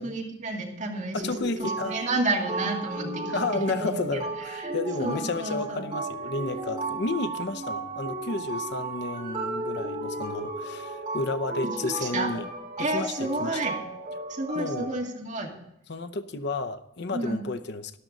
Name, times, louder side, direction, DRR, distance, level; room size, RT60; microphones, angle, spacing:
voice 1, 0.0-1.2 1.6-4.2 4.5-4.7 5.0-5.9 11.8-12.3 12.8-13.8 14.3-15.5 17.1-17.4, right 2 dB, 40° right, 2.2 m, -31 dB
voice 2, 1.1-2.0 3.3-12.5 12.8-13.6 14.5-15.0 15.9-18.0, left 3 dB, 65° left, 0.6 m, -32 dB
sound 1, 1.2-14.9, right 2 dB, 25° right, 5.8 m, -34 dB
12.5 x 11.5 x 3.9 m
head